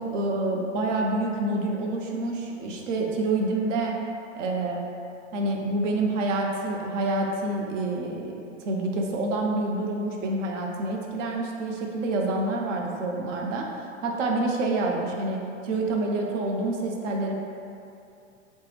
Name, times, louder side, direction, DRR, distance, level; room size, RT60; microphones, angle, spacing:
voice 1, 0.0-4.0 4.3-4.8 5.3-13.7 14.0-17.3, right 2 dB, 75° right, 0 dB, 0.6 m, -27 dB
3.3 x 2.0 x 3.1 m, 2.6 s
hypercardioid pair, 120°, 38 cm